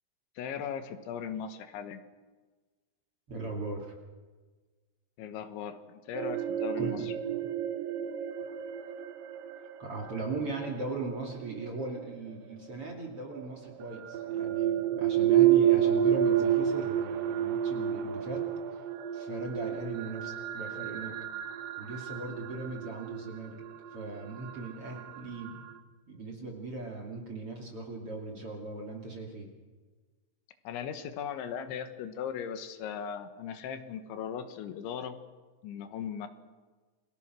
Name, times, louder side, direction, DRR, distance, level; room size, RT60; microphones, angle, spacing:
voice 1, 0.4-2.0 5.2-7.1 30.7-35.2 35.6-36.3, left 8 dB, 80° left, 9 dB, 3.6 m, -38 dB
voice 2, 3.3-3.9 6.8-7.1 9.8-18.8 19.1-21.2 21.8-23.6 23.9-25.7 26.1-29.5, right 3 dB, 35° right, 0 dB, 2.8 m, -39 dB
sound 1, 6.1-12.2 13.3-25.8, right 10 dB, 80° right, 2.0 m, -30 dB
29.5 x 22.5 x 6.2 m, 1.3 s
omnidirectional pair, 5.4 m